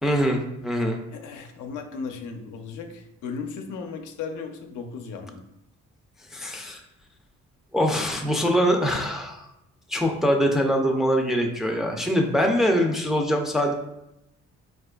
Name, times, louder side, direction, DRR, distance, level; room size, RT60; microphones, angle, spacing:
voice 1, 0.0-1.0 6.3-6.8 7.7-9.4 9.9-13.7, equal, ahead, 2 dB, 0.3 m, -23 dB
voice 2, 1.1-5.4, left 5 dB, 80° left, 5 dB, 0.5 m, -36 dB
4.2 x 2.4 x 2.2 m, 0.84 s
cardioid pair, 90°, 30 cm